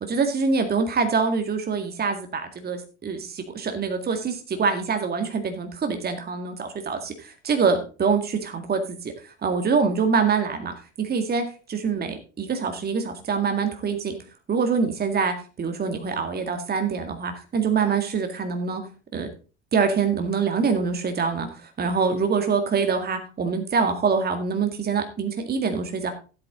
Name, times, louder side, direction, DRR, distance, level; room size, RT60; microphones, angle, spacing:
voice 1, 0.0-10.7 11.0-14.2 14.5-18.8 19.1-19.3 19.7-21.5 21.8-26.1, right 5 dB, 25° right, 6 dB, 1.9 m, -25 dB
14.0 x 8.7 x 3.7 m, 0.35 s
figure-of-eight pair, 65°, 34 cm